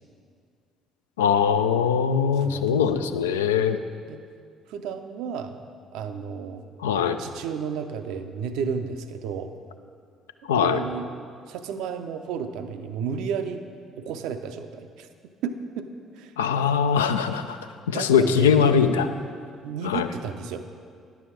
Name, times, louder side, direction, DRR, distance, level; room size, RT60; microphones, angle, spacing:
voice 1, 1.2-3.8 6.8-7.2 10.5-10.8 16.4-17.4 17.9-19.1 19.8-20.1, left 7 dB, 75° left, 9 dB, 0.3 m, -21 dB
voice 2, 2.3-2.8 4.1-4.2 4.7-5.5 5.9-6.6 7.2-9.5 10.5-11.1 11.5-13.6 14.0-15.1 15.4-15.9 16.1-16.3 17.9-18.8 19.6-20.6, right 6 dB, 60° right, 8 dB, 0.5 m, -32 dB
10.5 x 6.9 x 4.5 m, 2.2 s
figure-of-eight pair, 50°, 0 cm